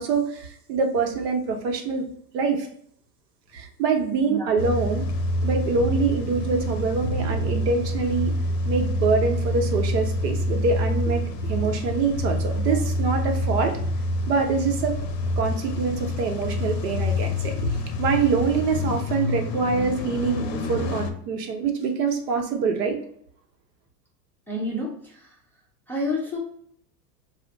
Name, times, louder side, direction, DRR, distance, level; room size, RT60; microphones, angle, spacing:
voice 1, 0.0-2.1 2.3-2.7 3.5-5.0 5.4-8.3 8.7-13.8 14.3-14.9 15.3-17.7 18.0-23.0, right 4 dB, 75° right, 3 dB, 0.9 m, -25 dB
Car / Engine starting / Idling, 4.6-21.1, left 1 dB, 85° left, 0.7 m, -27 dB
voice 2, 24.5-25.4 25.9-26.4, left 1 dB, 5° left, -4 dB, 0.5 m, -29 dB
2.4 x 2.1 x 3.8 m, 0.66 s
hypercardioid pair, 110°, 49 cm